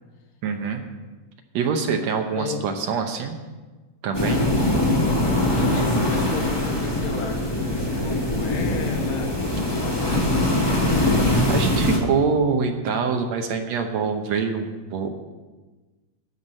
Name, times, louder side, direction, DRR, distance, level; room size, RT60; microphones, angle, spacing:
voice 1, 0.4-0.8 1.5-3.4 4.0-4.4 10.1-10.2 11.5-15.1, right 5 dB, 70° right, 5 dB, 2.0 m, -25 dB
voice 2, 2.3-2.6 4.2-9.3 9.8-11.4, left 5 dB, 70° left, 3 dB, 2.5 m, -33 dB
sound 1, 4.1-12.0, left 1 dB, 10° left, 1.4 m, -22 dB
13.5 x 5.8 x 7.6 m, 1.3 s
omnidirectional pair, 3.4 m